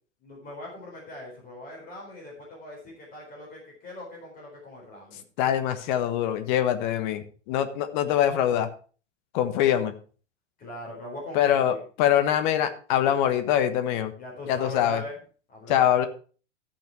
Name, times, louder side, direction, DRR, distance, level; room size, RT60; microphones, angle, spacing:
voice 1, 0.2-5.2 10.6-11.8 14.2-15.2 15.5-15.9, left 1 dB, 25° left, -1 dB, 4.1 m, -41 dB
voice 2, 5.4-8.7 9.3-9.9 11.3-14.1 14.5-15.0 15.7-16.1, left 10 dB, 40° left, 9 dB, 1.3 m, -24 dB
13.5 x 5.9 x 4.6 m, 0.39 s
figure-of-eight pair, 100°, 36 cm